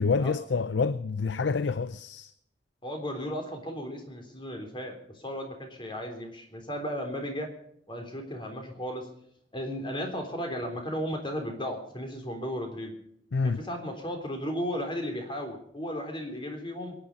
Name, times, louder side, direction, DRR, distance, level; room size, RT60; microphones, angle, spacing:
voice 1, 0.0-2.3 13.3-13.6, left 4 dB, 80° left, 0.6 m, -27 dB
voice 2, 2.8-7.5 7.9-9.1 9.5-12.9 13.4-16.9, equal, 30° left, 3.6 m, -35 dB
23.5 x 10.0 x 5.3 m
head